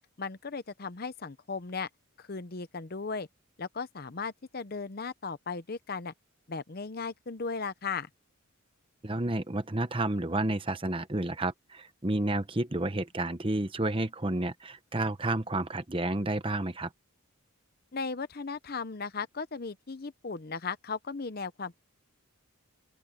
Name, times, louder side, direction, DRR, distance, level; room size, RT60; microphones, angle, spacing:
voice 1, 0.2-1.9 2.2-3.3 3.6-6.1 6.5-8.1 17.9-21.8, left 4 dB, 45° left, 0.7 m, -36 dB
voice 2, 9.0-16.9, right 2 dB, 25° right, 1.0 m, -30 dB
open air
head